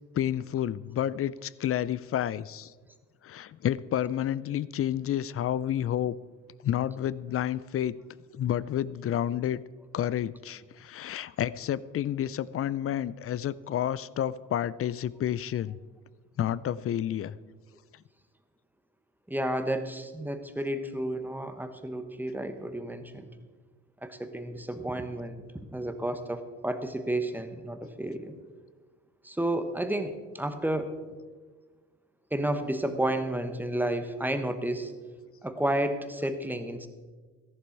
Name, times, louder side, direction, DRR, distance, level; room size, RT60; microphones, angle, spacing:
voice 1, 0.1-2.7 3.2-6.1 6.6-8.0 8.3-9.6 9.9-15.8 16.4-17.3, left 11 dB, 50° left, 19 dB, 0.5 m, -30 dB
voice 2, 19.3-23.3 24.0-25.4 25.7-28.4 29.2-30.9 32.3-34.9 35.4-36.9, right 1 dB, 5° right, 8 dB, 1.2 m, -31 dB
14.0 x 11.0 x 4.7 m, 1.4 s
cardioid pair, 90°, 30 cm